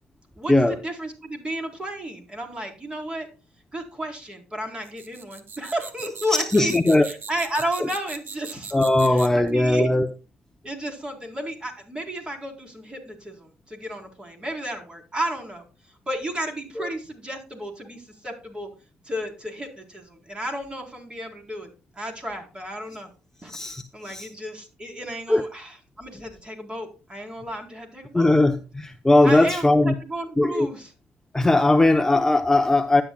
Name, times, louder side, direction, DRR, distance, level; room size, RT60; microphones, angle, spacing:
voice 1, 0.4-3.3 3.7-6.8 7.0-8.7 9.0-9.9 10.6-15.6 16.1-18.7 19.0-23.1 23.4-23.6 23.9-28.3 29.2-30.9, right 1 dB, 20° right, 4.1 m, -33 dB
sound 1, 4.8-9.5, right 6 dB, 55° right, 1.7 m, -39 dB
voice 2, 6.5-7.1 8.7-10.1 16.8-16.9 23.5-23.8 24.1-24.3 25.3-25.4 28.1-29.9 30.4-30.7 31.3-33.0, left 2 dB, 10° left, 0.9 m, -19 dB
12.5 x 9.8 x 2.3 m
supercardioid pair, 75°, 4 cm